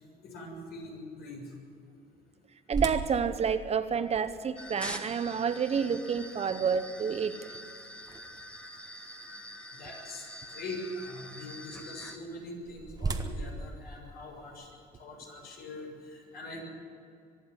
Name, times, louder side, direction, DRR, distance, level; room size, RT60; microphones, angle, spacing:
voice 1, 0.2-1.5 9.7-14.7 15.0-16.6, left 1 dB, 65° left, 1 dB, 6.7 m, -43 dB
sound 1, 2.7-8.7 9.2-9.3 9.9-10.1 12.2-14.9, right 3 dB, 20° right, 1.5 m, -39 dB
voice 2, 2.7-7.6, right 6 dB, 40° right, 11 dB, 1.0 m, -29 dB
sound 2, 4.6-12.2, equal, 5° left, 1.9 m, -45 dB
24.0 x 11.0 x 9.9 m, 2.4 s
cardioid pair, 110°, 17 cm